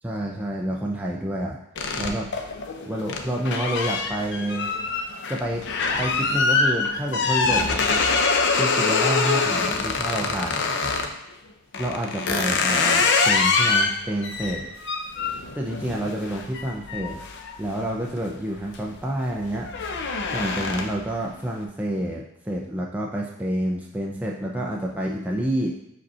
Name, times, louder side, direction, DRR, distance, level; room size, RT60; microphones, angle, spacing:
voice 1, 0.0-1.6 2.0-2.3 2.9-4.7 5.3-5.6 6.0-7.8 8.5-10.6 11.8-14.6 15.5-17.2 17.6-20.0 20.3-25.7, right 1 dB, 5° right, -2 dB, 0.5 m, -28 dB
sound 1, 1.8-11.1 11.7-18.2 18.6-19.0 19.3-21.1, left 4 dB, 55° left, 0.7 m, -24 dB
5.2 x 4.1 x 5.5 m, 0.84 s
head